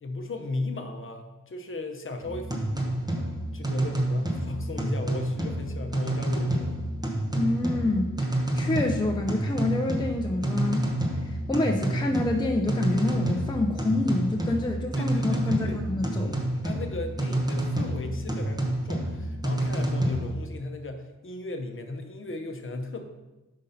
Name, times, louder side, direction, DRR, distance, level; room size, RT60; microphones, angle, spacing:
voice 1, 0.0-2.5 3.5-6.8 15.0-15.8 16.2-23.0, left 2 dB, 45° left, 5 dB, 0.8 m, -35 dB
sound 1, 2.2-20.4, right 1 dB, 15° right, 1.0 m, -29 dB
voice 2, 7.3-10.9 11.2-16.4, left 2 dB, 15° left, 2 dB, 0.5 m, -27 dB
5.3 x 5.2 x 5.6 m, 1.1 s
wide cardioid pair, 130°, 30 cm